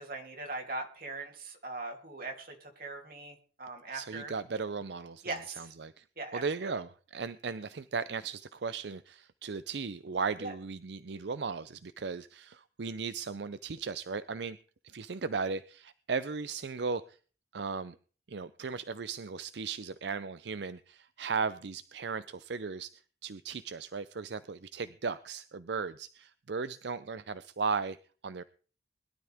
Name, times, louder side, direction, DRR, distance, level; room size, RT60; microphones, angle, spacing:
voice 1, 0.0-4.3 5.2-5.7 6.2-6.4 10.4-10.5, right 2 dB, 50° right, 2 dB, 3.1 m, -40 dB
voice 2, 3.9-5.2 5.6-6.0 6.3-14.6 14.8-17.2 17.5-18.0 18.3-28.0 28.2-28.4, right 5 dB, 75° right, 14 dB, 0.5 m, -36 dB
21.0 x 12.5 x 3.5 m, 0.40 s
head